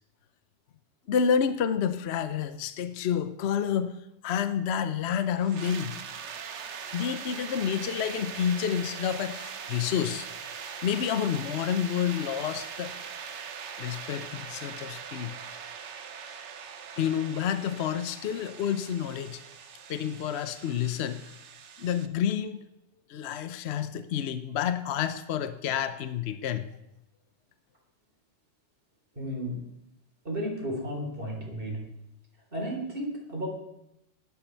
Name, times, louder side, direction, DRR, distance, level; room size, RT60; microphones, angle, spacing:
voice 1, 1.1-3.9 4.2-6.0 6.9-10.3 10.8-13.0 13.8-15.4 17.0-19.4 19.9-21.3 21.8-22.6 23.1-26.7, left 8 dB, 60° left, 11 dB, 0.9 m, -29 dB
sound 1, 5.4-22.1, right 7 dB, 65° right, 1.2 m, -41 dB
voice 2, 29.1-29.6 30.2-31.8 32.5-33.5, equal, 45° right, -1 dB, 3.9 m, -33 dB
16.0 x 11.5 x 4.5 m, 0.83 s
omnidirectional pair, 1.3 m